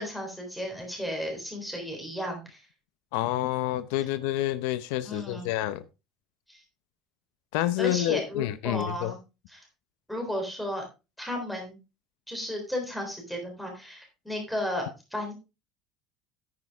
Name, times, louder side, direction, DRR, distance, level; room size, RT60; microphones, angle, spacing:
voice 1, 0.0-2.6 5.0-5.5 6.5-6.6 7.8-9.2 9.5-9.6 10.1-10.8 11.2-11.8 12.3-15.3, left 1 dB, ahead, 3.7 m, -34 dB
voice 2, 3.1-5.8 7.5-9.1, left 14 dB, 85° left, 0.7 m, -28 dB
9.6 x 9.2 x 3.5 m
cardioid pair, 160°, 0 cm